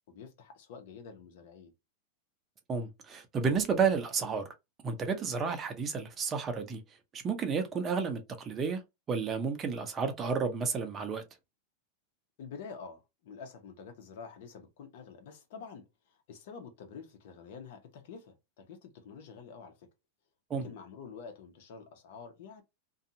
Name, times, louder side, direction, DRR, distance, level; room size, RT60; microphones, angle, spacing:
voice 1, 0.1-1.7 12.4-19.9 20.5-22.6, left 5 dB, 65° left, 0.9 m, -48 dB
voice 2, 2.7-4.5 4.8-6.8 7.1-8.8 9.1-11.2 20.5-20.6, right 5 dB, 25° right, 0.7 m, -31 dB
2.6 x 2.3 x 2.7 m
supercardioid pair, 135°, 0 cm